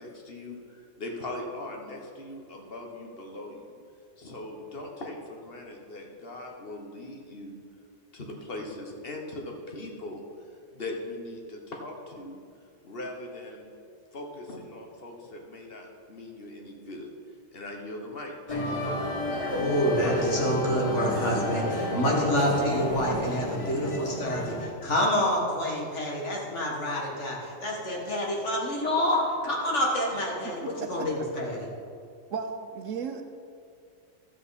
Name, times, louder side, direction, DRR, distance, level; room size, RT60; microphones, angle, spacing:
voice 1, 0.0-3.7 4.2-7.6 8.1-10.2 10.7-12.4 12.8-13.7 14.1-17.1 17.5-19.1, left 2 dB, 50° left, 0 dB, 1.5 m, -40 dB
sound 1, 18.5-24.7, left 1 dB, 25° left, 1.7 m, -30 dB
voice 2, 19.6-31.6, equal, 70° left, -2 dB, 2.1 m, -27 dB
voice 3, 30.4-31.1 32.3-33.2, right 6 dB, 85° right, 6 dB, 1.2 m, -35 dB
13.0 x 7.7 x 4.1 m, 2.3 s
omnidirectional pair, 1.3 m